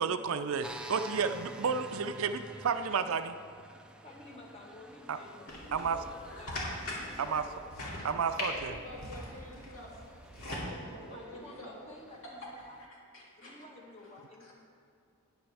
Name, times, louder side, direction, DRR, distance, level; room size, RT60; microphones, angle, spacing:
voice 1, 0.0-3.4 5.1-5.2 5.7-6.0 7.2-7.4 8.0-8.8, right 6 dB, 70° right, 9 dB, 0.4 m, -31 dB
sound 1, 0.6-12.9, right 1 dB, 5° right, 0.4 m, -51 dB
voice 2, 4.0-7.7 11.0-12.8 13.4-14.5, left 2 dB, 25° left, 0 dB, 1.3 m, -52 dB
sound 2, 5.5-10.7, left 1 dB, 90° left, 2.6 m, -41 dB
voice 3, 8.4-10.2 10.6-11.7 12.4-12.5 13.1-13.6 14.0-14.1 14.4-14.5, left 1 dB, 65° left, -4 dB, 2.7 m, -48 dB
13.0 x 9.8 x 3.4 m, 2.4 s
head